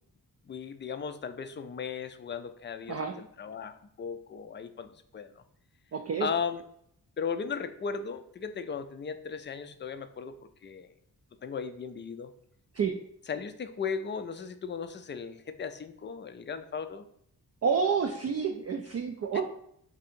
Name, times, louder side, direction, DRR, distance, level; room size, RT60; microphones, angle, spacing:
voice 1, 0.5-5.4 6.2-6.6 7.2-10.4 10.6-10.9 11.4-12.3 13.3-17.1 19.3-19.4, left 6 dB, 30° left, 10 dB, 0.4 m, -36 dB
voice 2, 5.9-6.3 12.7-13.0 17.6-19.4, right 6 dB, 40° right, 4 dB, 0.4 m, -29 dB
2.7 x 2.6 x 4.2 m, 0.69 s
cardioid pair, 45°, 42 cm